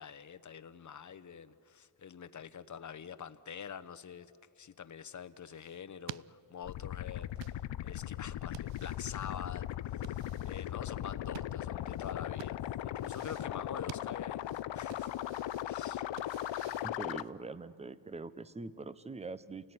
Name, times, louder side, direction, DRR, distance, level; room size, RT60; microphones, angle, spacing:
voice 1, 0.0-4.3 4.6-10.2 10.4-15.1 15.6-16.1, left 7 dB, 40° left, 10 dB, 1.0 m, -46 dB
sound 1, 5.2-17.5, right 15 dB, 65° right, 0.5 m, -53 dB
sound 2, 6.6-17.2, left 13 dB, 65° left, 0.7 m, -38 dB
voice 2, 16.8-19.7, right 3 dB, 15° right, 15 dB, 0.7 m, -43 dB
29.0 x 18.5 x 9.7 m, 2.5 s
cardioid pair, 120°, 48 cm